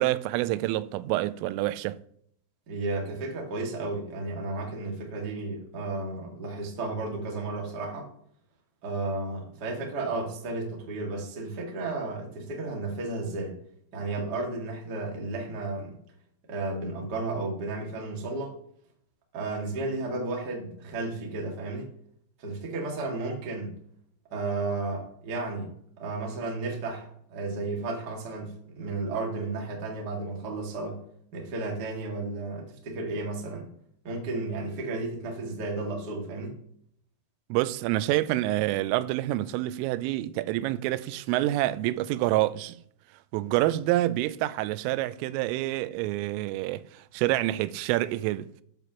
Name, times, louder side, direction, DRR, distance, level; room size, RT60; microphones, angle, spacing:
voice 1, 0.0-2.0 37.5-42.8 43.3-48.5, right 16 dB, 90° right, 3.2 m, -27 dB
voice 2, 2.7-8.1 8.8-13.6 13.9-16.0 16.5-18.6 19.3-21.9 22.4-23.7 24.3-31.0 31.3-33.7 34.0-36.6, right 2 dB, 50° right, 1.2 m, -33 dB
13.0 x 9.1 x 3.0 m
omnidirectional pair, 5.7 m